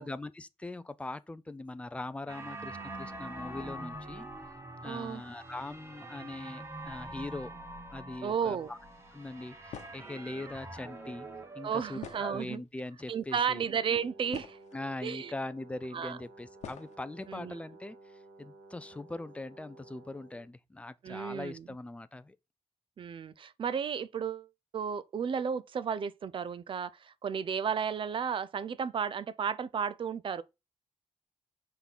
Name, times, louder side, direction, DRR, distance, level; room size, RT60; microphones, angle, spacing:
voice 1, 0.0-4.3 4.8-7.5 7.9-8.8 9.1-11.3 11.5-13.7 14.7-18.1 18.4-22.4, left 2 dB, 10° left, 0.5 m, -41 dB
sound 1, 2.3-12.4, right 2 dB, 20° right, 1.2 m, -45 dB
voice 2, 4.8-5.2 8.2-8.7 11.6-12.6 13.1-14.6 15.0-15.3 15.9-16.2 17.3-17.6 21.0-21.6 23.0-24.5 24.7-30.4, right 7 dB, 45° right, 0.5 m, -33 dB
sound 2, 9.7-10.2 12.0-12.7 13.6-13.7 14.0-14.8 15.8-15.9 16.6-17.0, left 8 dB, 80° left, 1.0 m, -46 dB
Brass instrument, 13.5-20.5, right 2 dB, 75° right, 2.1 m, -54 dB
5.8 x 3.9 x 6.0 m
wide cardioid pair, 145°, 12 cm